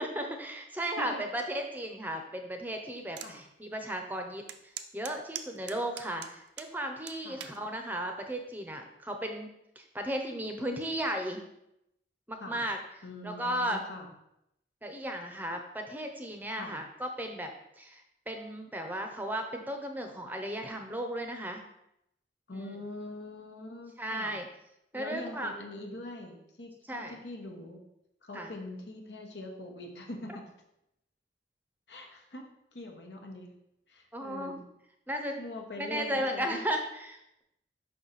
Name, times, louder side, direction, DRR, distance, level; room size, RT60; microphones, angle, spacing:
voice 1, 0.0-4.4 4.9-9.5 9.8-11.4 12.3-12.8 13.2-13.8 14.8-17.5 17.8-18.0 18.3-21.6 22.5-22.8 24.0-24.5 24.9-25.5 26.9-27.2 28.3-28.5 34.1-34.6 35.1-35.4 35.8-37.4, right 1 dB, 10° right, 4 dB, 0.6 m, -35 dB
sound 1, 3.2-3.3 3.8-3.9 4.5-6.7 7.1-7.6 8.3-8.6, right 10 dB, 85° right, 0.5 m, -41 dB
voice 2, 13.0-14.1 16.5-16.8 22.5-24.3 24.9-27.8 28.2-30.4 31.9-33.5 33.9-34.6 35.4-36.6, left 1 dB, 80° left, 3 dB, 1.1 m, -43 dB
5.8 x 5.4 x 4.0 m, 0.82 s
head